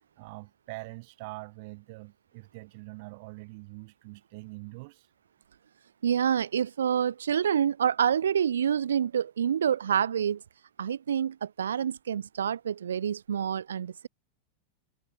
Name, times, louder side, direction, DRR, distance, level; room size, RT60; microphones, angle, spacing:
voice 1, 0.2-5.1, right 26 dB, 50° right, 1.2 m, -44 dB
voice 2, 6.0-10.4 10.8-14.1, right 8 dB, 65° right, 0.4 m, -27 dB
figure-of-eight pair, 90°, 0 cm